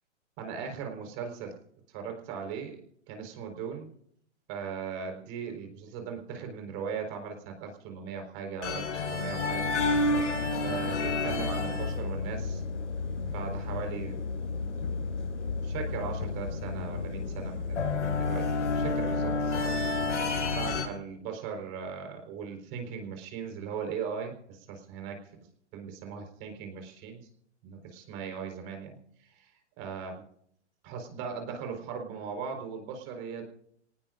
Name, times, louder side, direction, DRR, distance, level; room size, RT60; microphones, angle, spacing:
voice 1, 0.4-1.5 1.9-2.8 3.1-3.9 4.5-10.1 10.6-12.6 13.3-14.2 15.6-19.8 20.5-25.3 25.7-27.2 27.6-30.2 30.8-33.4, right 6 dB, 35° right, 4 dB, 4.4 m, -38 dB
sound 1, 8.6-20.8, left 3 dB, 90° left, 5.9 m, -30 dB
27.0 x 18.5 x 2.5 m, 0.69 s
hypercardioid pair, 140°, 35 cm